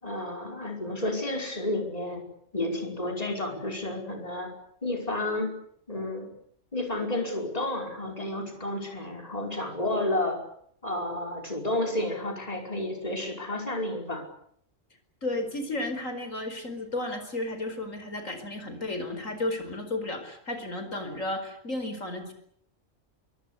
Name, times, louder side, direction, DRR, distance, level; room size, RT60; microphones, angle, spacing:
voice 1, 0.0-2.2 2.5-4.5 4.8-5.5 5.9-6.3 6.7-10.4 10.8-14.2, left 1 dB, 30° left, 2 dB, 5.5 m, -31 dB
voice 2, 15.2-22.3, left 2 dB, 80° left, 7 dB, 5.2 m, -33 dB
25.5 x 24.0 x 8.3 m, 0.68 s
omnidirectional pair, 1.3 m